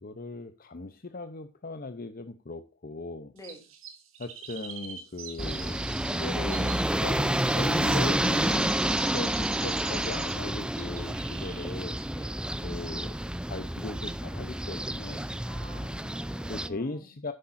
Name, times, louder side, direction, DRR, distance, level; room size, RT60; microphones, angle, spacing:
voice 1, 0.0-3.3 4.2-12.0 12.6-13.1 13.4-15.3 16.5-17.3, left 2 dB, 45° left, 0.8 m, -38 dB
Chirp tweet, 3.4-10.5 10.8-11.7 12.0-12.1, right 8 dB, 85° right, 3.1 m, -42 dB
sound 1, 5.4-16.7, right 1 dB, 5° right, 0.5 m, -29 dB
voice 2, 15.4-17.1, equal, 15° left, 3.4 m, -47 dB
10.0 x 9.9 x 2.6 m
head